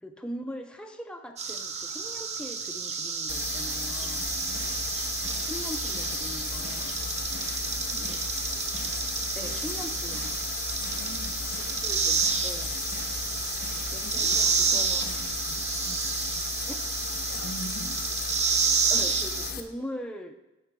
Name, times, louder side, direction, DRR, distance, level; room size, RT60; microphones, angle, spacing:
voice 1, 0.0-4.2 5.5-7.0 8.0-8.2 9.3-10.4 11.6-12.8 13.9-15.1 16.7-16.9 18.9-20.4, equal, 5° left, 4 dB, 0.5 m, -41 dB
sound 1, 1.4-19.5, right 5 dB, 30° right, 0.7 m, -30 dB
sound 2, 3.3-19.6, left 6 dB, 45° left, 0.7 m, -35 dB
voice 2, 4.2-4.7 7.7-8.2 10.8-11.4 14.0-16.1 17.3-18.1, equal, 80° left, 5 dB, 1.1 m, -44 dB
sound 3, 4.2-15.4, right 1 dB, 55° right, 3.1 m, -45 dB
9.6 x 6.5 x 3.5 m, 1.0 s
head